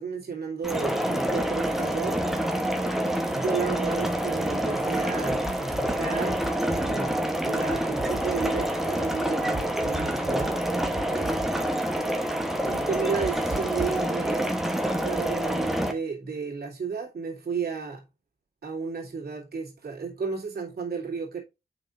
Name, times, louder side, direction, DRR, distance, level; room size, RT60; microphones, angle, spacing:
voice 1, 0.0-2.2 3.3-6.4 6.8-10.6 12.7-14.5 15.0-18.0 18.6-21.4, right 5 dB, 65° right, 2.4 m, -33 dB
sound 1, 0.6-15.9, right 1 dB, ahead, 1.0 m, -27 dB
sound 2, 5.3-6.0 6.3-6.9 7.7-8.6 9.5-10.5 10.8-11.5 13.2-14.0, right 2 dB, 25° right, 0.8 m, -37 dB
6.9 x 5.5 x 2.5 m
wide cardioid pair, 110°, 17 cm